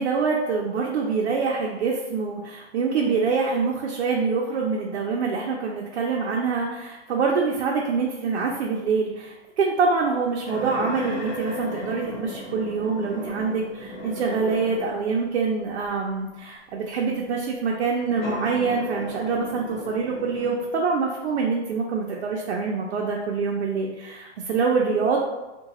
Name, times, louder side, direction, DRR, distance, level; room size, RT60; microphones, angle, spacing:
voice 1, 0.0-25.2, right 5 dB, 65° right, -2 dB, 0.5 m, -25 dB
sound 1, 10.4-15.1 15.8-15.9 18.0-20.7, equal, 40° left, 1.0 m, -35 dB
2.8 x 2.2 x 2.9 m, 1.1 s
hypercardioid pair, 175°, 35 cm